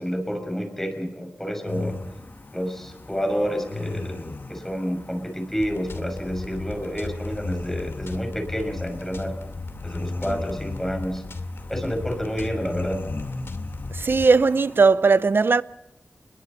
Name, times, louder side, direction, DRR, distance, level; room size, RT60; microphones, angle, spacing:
voice 1, 0.0-2.1 2.5-9.4 9.8-11.3 11.7-13.1, equal, 10° left, 6.1 m, -29 dB
sound 1, 1.7-14.9, left 2 dB, 50° left, 1.5 m, -38 dB
sound 2, 5.6-14.3, left 3 dB, 75° left, 2.5 m, -36 dB
voice 2, 13.9-15.6, right 4 dB, 60° right, 0.6 m, -18 dB
28.5 x 22.0 x 4.2 m
wide cardioid pair, 70°, 4 cm